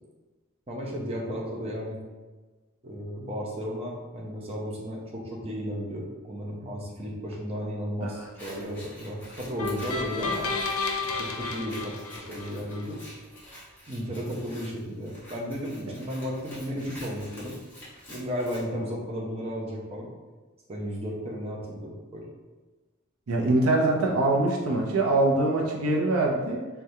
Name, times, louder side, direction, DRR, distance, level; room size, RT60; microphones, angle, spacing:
voice 1, 0.7-2.0 2.8-10.5 11.0-13.0 13.9-17.6 18.1-20.1 20.7-22.3, equal, 30° right, -3 dB, 0.6 m, -34 dB
Scissors, 8.2-18.6, equal, 10° left, 1.2 m, -48 dB
sound 1, 9.6-12.8, left 3 dB, 75° left, 0.5 m, -31 dB
voice 2, 23.3-26.6, right 2 dB, 85° right, -1 dB, 0.6 m, -23 dB
4.7 x 2.3 x 2.7 m, 1.3 s
head